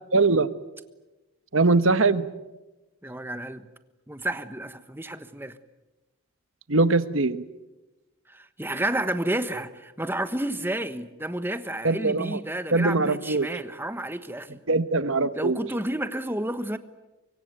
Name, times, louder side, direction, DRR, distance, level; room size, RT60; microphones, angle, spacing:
voice 1, 0.1-0.5 1.5-2.3 6.7-7.4 11.8-12.4 12.7-13.5 14.7-15.6, right 3 dB, 60° right, 12 dB, 1.3 m, -22 dB
voice 2, 3.0-3.7 4.1-5.6 8.3-14.6 15.3-16.8, right 1 dB, 10° right, 11 dB, 1.2 m, -31 dB
24.5 x 24.5 x 9.2 m, 1.1 s
head